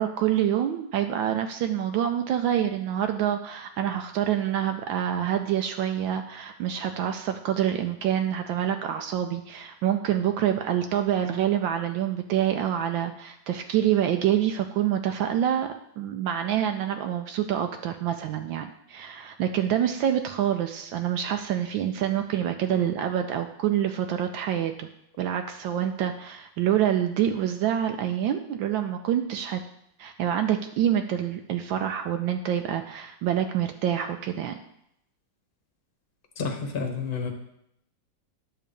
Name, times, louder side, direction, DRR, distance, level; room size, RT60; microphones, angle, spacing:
voice 1, 0.0-24.9 25.2-29.6 30.0-34.6, right 10 dB, 80° right, 6 dB, 1.3 m, -26 dB
voice 2, 36.4-37.3, left 5 dB, 35° left, 4 dB, 1.1 m, -30 dB
10.0 x 3.9 x 6.9 m, 0.77 s
omnidirectional pair, 2.1 m